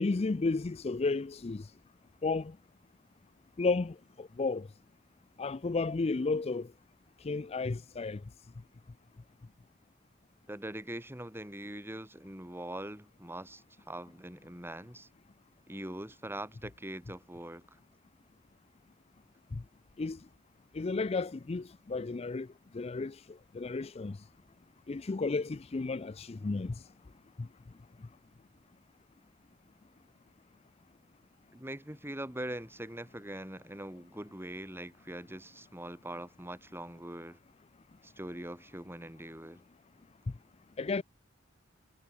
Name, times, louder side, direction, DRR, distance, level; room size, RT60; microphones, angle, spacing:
voice 1, 0.0-1.6 2.2-2.5 3.6-4.6 5.4-6.7 7.2-8.2 19.5-19.6 20.0-20.2 20.7-22.5 22.7-23.2 23.5-24.2 24.9-26.7 40.8-41.0, left 3 dB, 30° left, 0.4 m, -32 dB
voice 2, 10.5-15.1 15.7-17.6 31.5-37.4 38.0-39.6, right 1 dB, 10° right, 6.4 m, -42 dB
head